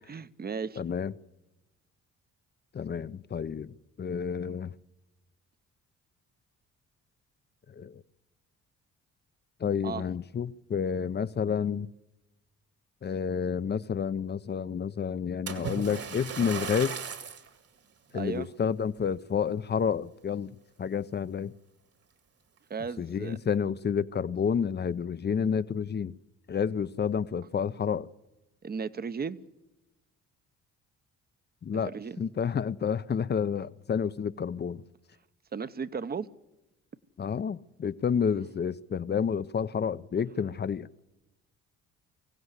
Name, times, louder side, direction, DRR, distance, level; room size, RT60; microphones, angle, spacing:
voice 1, 0.1-0.8 9.8-10.0 18.1-18.5 22.7-23.4 28.6-29.4 31.8-32.2 35.5-36.3, right 5 dB, 30° right, 0.8 m, -35 dB
voice 2, 0.8-1.1 2.7-4.7 7.7-8.0 9.6-11.9 13.0-17.0 18.1-20.5 20.8-21.5 23.0-26.1 26.5-28.1 31.6-31.9 32.2-34.8 37.2-40.9, left 7 dB, 35° left, 0.7 m, -30 dB
Splash splatter, 15.5-17.5 18.2-18.4 19.0-19.1, right 6 dB, 55° right, 2.0 m, -36 dB
24.5 x 16.0 x 8.2 m
cardioid pair, 90°, 30 cm